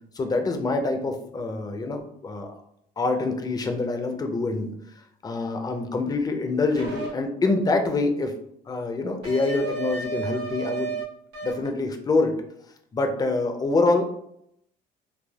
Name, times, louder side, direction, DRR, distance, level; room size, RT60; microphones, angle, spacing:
voice 1, 0.1-2.6 3.0-4.7 5.2-8.3 8.7-10.9 11.4-12.4 12.9-14.1, left 3 dB, 25° left, 5 dB, 0.4 m, -25 dB
sound 1, 6.8-7.1 9.2-11.0 11.3-11.7, right 4 dB, 80° right, 0.9 m, -32 dB
3.3 x 2.1 x 2.2 m, 0.71 s
cardioid pair, 110°, 17 cm